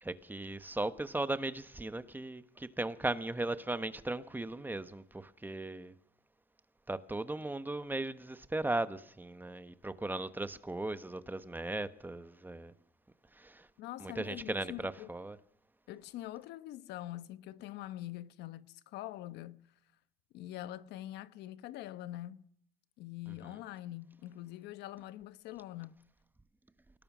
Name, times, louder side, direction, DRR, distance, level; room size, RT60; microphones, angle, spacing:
voice 1, 0.0-5.9 6.9-12.7 13.4-13.7 14.0-15.4, right 2 dB, 10° right, 1.2 m, -37 dB
voice 2, 13.8-15.1 15.9-19.6 20.3-22.4 23.0-26.0, left 14 dB, 85° left, 1.1 m, -44 dB
28.5 x 18.5 x 6.2 m
cardioid pair, 110°, 17 cm